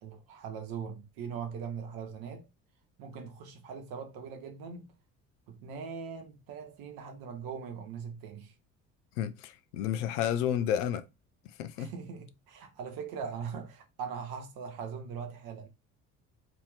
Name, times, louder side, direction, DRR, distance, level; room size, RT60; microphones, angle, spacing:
voice 1, 0.0-2.5 3.0-4.9 5.5-8.5 11.8-15.7, right 6 dB, 60° right, 1.1 m, -41 dB
voice 2, 9.2-11.1 11.6-11.9, left 10 dB, 60° left, 0.6 m, -31 dB
4.3 x 2.8 x 3.1 m
figure-of-eight pair, 50°, 41 cm